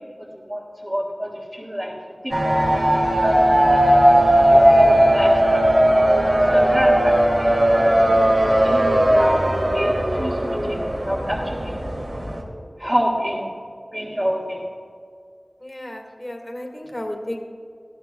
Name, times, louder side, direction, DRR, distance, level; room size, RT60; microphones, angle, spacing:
voice 1, 0.0-2.0 2.2-2.8 3.2-3.5 3.9-4.0 4.5-5.6 6.5-11.8 12.8-13.5 13.9-14.6, equal, 20° right, -5 dB, 1.8 m, -27 dB
sound 1, 2.3-12.4, right 1 dB, 55° right, 2.6 m, -17 dB
voice 2, 15.6-17.4, left 1 dB, 30° left, 1 dB, 1.9 m, -33 dB
20.5 x 13.0 x 2.3 m, 2.3 s
wide cardioid pair, 40°, 0 cm